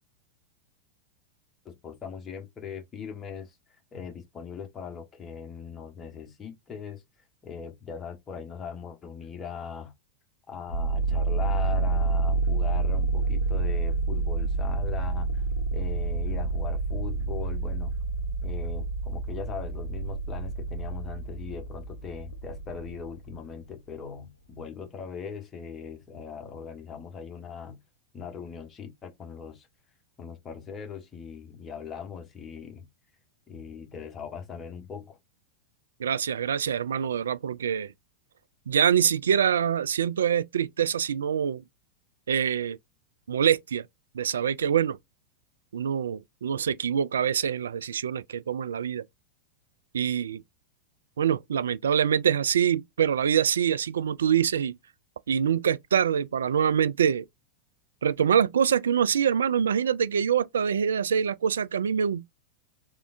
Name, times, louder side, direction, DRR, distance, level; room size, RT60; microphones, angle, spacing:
voice 1, 1.6-7.0 7.4-9.9 10.5-15.5 15.7-17.9 18.4-27.8 28.1-29.7 30.2-32.9 33.5-35.2, left 6 dB, 25° left, 1.1 m, -40 dB
sound 1, 10.7-23.4, right 3 dB, 70° left, 0.6 m, -28 dB
voice 2, 36.0-37.9 38.7-41.6 42.3-42.8 43.3-43.8 44.1-45.0 45.7-49.0 49.9-50.4 51.2-54.8 55.3-57.3 58.0-62.2, right 8 dB, 65° right, 0.3 m, -25 dB
3.6 x 3.5 x 2.5 m
figure-of-eight pair, 90°, 0 cm